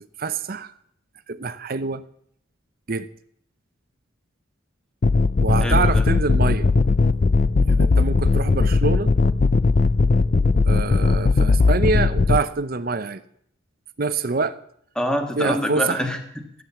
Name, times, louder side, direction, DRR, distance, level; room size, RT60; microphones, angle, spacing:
voice 1, 0.2-0.7 1.3-2.0 2.9-3.1 5.4-6.7 7.6-9.1 10.7-13.2 14.0-14.6 15.4-16.0, right 4 dB, 45° right, 13 dB, 0.7 m, -25 dB
sound 1, 5.0-12.4, left 3 dB, 40° left, 0.4 m, -18 dB
voice 2, 5.6-6.0 14.9-16.6, equal, 5° left, 4 dB, 1.6 m, -26 dB
14.5 x 9.0 x 7.0 m, 0.70 s
head